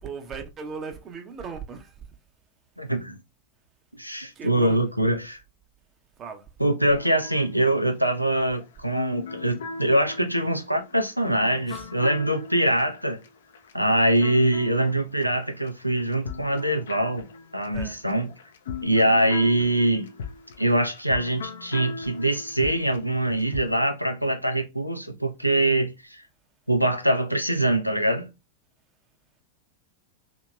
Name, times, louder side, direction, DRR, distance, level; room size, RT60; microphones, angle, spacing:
voice 1, 0.0-2.0 4.4-4.8 6.2-6.5 11.7-11.9 17.7-18.0, right 5 dB, 25° right, 0.6 m, -38 dB
voice 2, 2.8-3.2 3.9-5.4 6.6-13.2 13.7-17.3 17.5-18.3 18.8-20.1 20.6-26.2 26.7-28.3, right 1 dB, 90° right, 0.5 m, -23 dB
sound 1, 6.9-15.7 16.0-23.8, left 4 dB, 60° left, 0.4 m, -39 dB
2.9 x 2.8 x 2.2 m
figure-of-eight pair, 90°, 0 cm